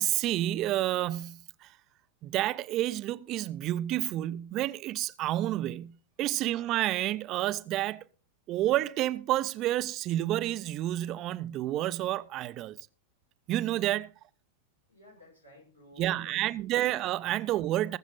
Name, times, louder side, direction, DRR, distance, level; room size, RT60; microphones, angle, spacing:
voice 1, 0.0-1.7 2.2-8.0 8.5-12.8 13.5-14.1 16.0-18.0, right 14 dB, 35° right, 0.6 m, -30 dB
voice 2, 14.9-16.8 17.3-17.4, left 2 dB, 90° left, 7.9 m, -54 dB
20.0 x 7.3 x 4.0 m
figure-of-eight pair, 90°, 0 cm